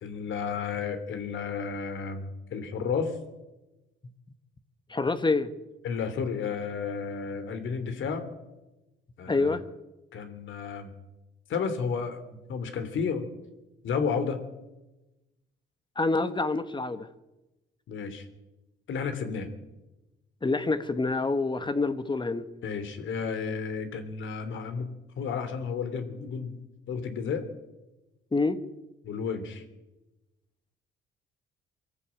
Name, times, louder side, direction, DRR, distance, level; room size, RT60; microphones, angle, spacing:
voice 1, 0.0-3.2 5.8-8.2 9.2-9.6 10.1-10.9 11.5-13.3 13.8-14.4 17.9-18.3 18.9-19.5 22.6-26.6 26.9-27.5 29.0-29.6, left 5 dB, 75° left, 9 dB, 3.2 m, -32 dB
voice 2, 4.9-5.5 9.3-9.6 16.0-17.1 20.4-22.5 28.3-28.6, left 3 dB, 25° left, 11 dB, 1.4 m, -27 dB
24.0 x 13.5 x 8.8 m, 1.0 s
cardioid pair, 90°, 20 cm